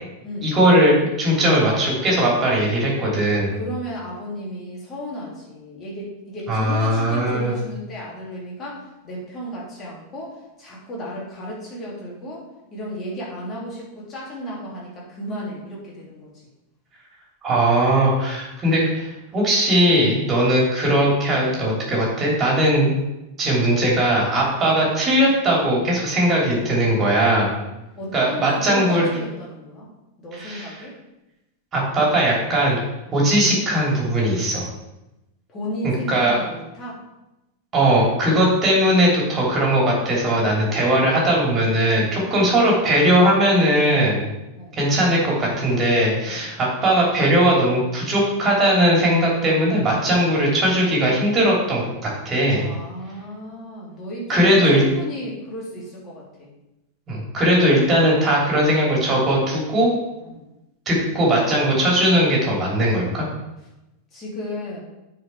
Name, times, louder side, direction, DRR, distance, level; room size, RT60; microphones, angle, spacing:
voice 1, 0.4-3.6 6.5-7.5 17.4-22.9 23.4-27.5 28.1-29.1 30.3-30.7 31.7-32.8 33.1-34.6 35.8-36.4 37.7-44.3 44.8-52.7 54.3-54.8 57.1-59.9 60.8-63.2, right 1 dB, 25° right, -3 dB, 3.3 m, -19 dB
voice 2, 1.3-1.7 3.5-16.4 20.2-20.4 24.5-24.7 27.9-29.9 30.2-31.0 33.0-33.2 35.5-37.0 41.9-42.3 44.5-44.8 46.3-46.5 49.8-50.2 52.5-56.5 60.2-60.5 64.1-64.8, equal, 25° left, -4 dB, 3.0 m, -34 dB
9.4 x 4.9 x 4.6 m, 0.95 s
figure-of-eight pair, 90°, 0 cm